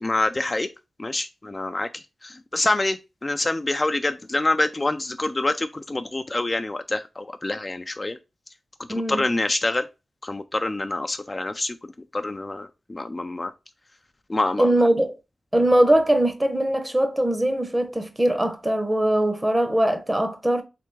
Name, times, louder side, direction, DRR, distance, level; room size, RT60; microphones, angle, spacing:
voice 1, 0.0-0.7 1.0-8.2 8.9-9.9 10.2-11.8 12.1-13.5 14.3-14.7, left 2 dB, 30° left, 0.3 m, -26 dB
voice 2, 8.9-9.2 14.6-15.2 15.5-20.6, right 1 dB, 15° right, 0.7 m, -21 dB
3.4 x 3.3 x 3.1 m
cardioid pair, 55°, 0 cm